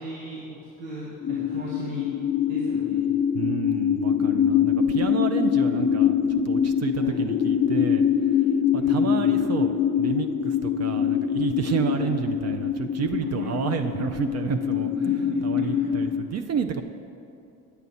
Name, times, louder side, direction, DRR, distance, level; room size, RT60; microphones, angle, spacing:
voice 1, 0.0-2.1 2.5-3.0 6.9-7.2 8.7-9.3 11.8-12.1 13.2-13.5 15.0-16.0, right 1 dB, 80° right, -8 dB, 1.8 m, -38 dB
sound 1, 1.2-16.2, left 8 dB, 30° left, 0.5 m, -24 dB
voice 2, 3.3-6.2 6.5-8.1 8.7-9.7 10.0-15.1 15.4-16.8, right 7 dB, 40° right, 7 dB, 0.5 m, -30 dB
9.1 x 8.1 x 4.1 m, 2.7 s
hypercardioid pair, 60°, 38 cm